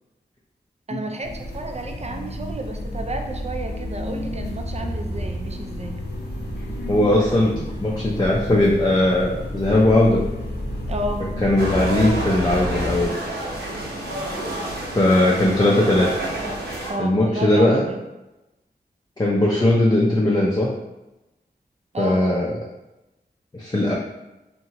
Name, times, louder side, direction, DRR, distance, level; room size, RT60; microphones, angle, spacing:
voice 1, 0.9-6.0 10.9-11.3 16.9-18.0 21.9-22.3, right 1 dB, 40° right, 4 dB, 0.4 m, -31 dB
sound 1, 1.2-13.1, left 1 dB, 75° left, 0.5 m, -31 dB
voice 2, 6.9-10.2 11.4-13.1 14.9-16.1 17.0-17.8 19.2-20.7 22.0-22.5 23.5-23.9, left 1 dB, 25° left, -4 dB, 0.5 m, -19 dB
sound 2, 11.6-16.9, right 1 dB, 70° right, 0.7 m, -29 dB
2.8 x 2.2 x 2.8 m, 1.0 s
cardioid pair, 50°, 17 cm